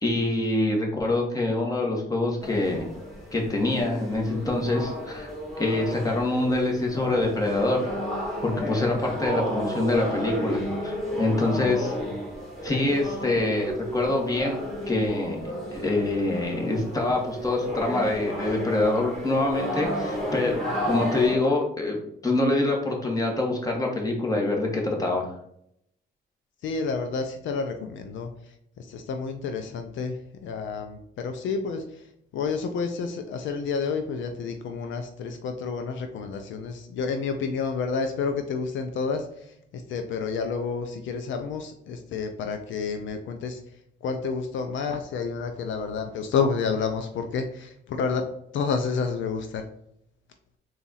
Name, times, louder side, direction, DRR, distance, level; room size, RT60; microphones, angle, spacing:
voice 1, 0.0-2.8 3.3-5.3 5.6-7.8 8.4-11.9 12.6-14.6 14.9-22.0 22.2-25.3, left 2 dB, 20° left, 0 dB, 1.2 m, -25 dB
sound 1, 2.4-21.4, equal, ahead, 1.5 m, -32 dB
voice 2, 26.6-28.3 28.8-32.0 32.3-43.6 44.0-48.2 48.5-49.6, left 5 dB, 75° left, 6 dB, 0.5 m, -30 dB
3.9 x 2.5 x 4.0 m, 0.72 s
cardioid pair, 90°, 20 cm